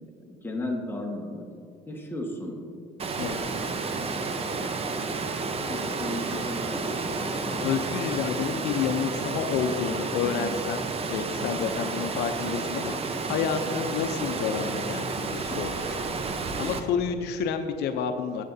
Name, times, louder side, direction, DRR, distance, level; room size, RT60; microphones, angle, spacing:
voice 1, 0.0-1.6 1.9-2.7 3.3-3.6 5.4-7.7 10.2-10.5 15.5-15.6, left 1 dB, 15° left, 0 dB, 1.4 m, -36 dB
Water, 3.0-16.8, right 4 dB, 35° right, 0.8 m, -31 dB
voice 2, 7.6-10.8 11.1-13.0 13.3-15.9 16.6-18.4, left 7 dB, 80° left, 8 dB, 0.5 m, -29 dB
12.0 x 8.0 x 2.7 m, 2.3 s
cardioid pair, 110°, 17 cm